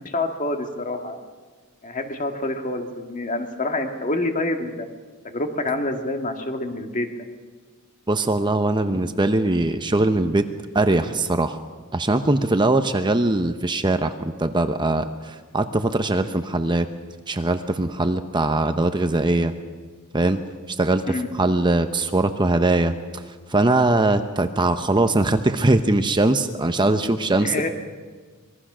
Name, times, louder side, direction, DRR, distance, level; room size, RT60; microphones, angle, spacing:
voice 1, 0.0-1.2 1.8-4.9 5.2-7.1 20.9-21.3 27.4-27.7, left 2 dB, 35° left, 4 dB, 2.0 m, -27 dB
voice 2, 8.1-10.4 10.7-11.6 11.9-16.9 17.3-19.5 20.1-20.4 20.7-23.2 23.5-27.5, right 2 dB, 20° right, 8 dB, 0.8 m, -21 dB
25.0 x 21.5 x 6.2 m, 1.4 s
head